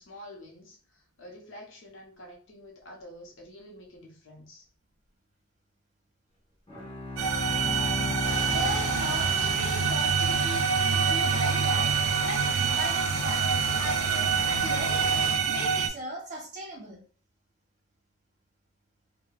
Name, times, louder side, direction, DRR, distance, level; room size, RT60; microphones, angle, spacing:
voice 1, 0.0-4.7, left 1 dB, 60° left, 0.8 m, -48 dB
Bowed string instrument, 6.7-10.2, left 2 dB, 25° left, 0.9 m, -35 dB
sound 1, 7.2-15.9, right 6 dB, 70° right, 0.4 m, -26 dB
sound 2, 8.2-15.4, left 5 dB, 85° left, 0.4 m, -38 dB
voice 2, 8.4-11.9 12.2-15.0 15.5-17.0, right 1 dB, 35° right, 0.9 m, -38 dB
3.2 x 2.2 x 2.3 m
head